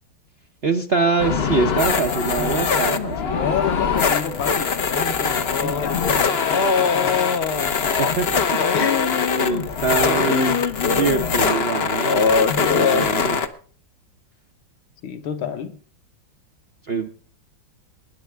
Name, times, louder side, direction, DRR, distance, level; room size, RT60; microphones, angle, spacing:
voice 1, 0.6-3.3 8.0-8.9 9.4-10.6 10.9-13.4 16.9-17.1, right 4 dB, 50° right, 5 dB, 0.7 m, -24 dB
sound 1, 1.2-13.5, left 6 dB, 45° left, 0.8 m, -21 dB
voice 2, 3.2-7.6 8.7-9.0 15.0-15.8, left 7 dB, 90° left, 7 dB, 2.1 m, -30 dB
23.5 x 10.5 x 3.4 m, 0.43 s
omnidirectional pair, 2.1 m